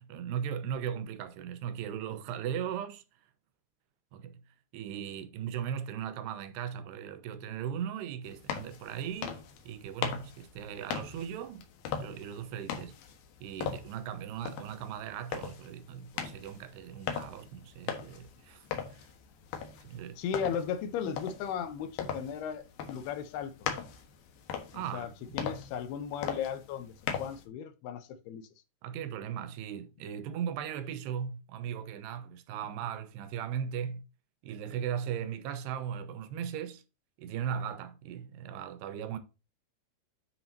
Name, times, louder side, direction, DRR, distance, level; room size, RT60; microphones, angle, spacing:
voice 1, 0.0-3.0 4.1-4.4 4.7-11.7 12.0-13.0 13.4-19.1 19.8-20.2 24.7-25.1 28.8-34.1 34.4-36.8 37.2-39.2, right 8 dB, 75° right, 2.8 m, -38 dB
sound 1, 8.3-27.4, left 7 dB, 65° left, 2.8 m, -40 dB
voice 2, 20.2-23.7 24.7-28.5, left 8 dB, 80° left, 2.5 m, -36 dB
10.5 x 6.2 x 2.8 m
omnidirectional pair, 5.3 m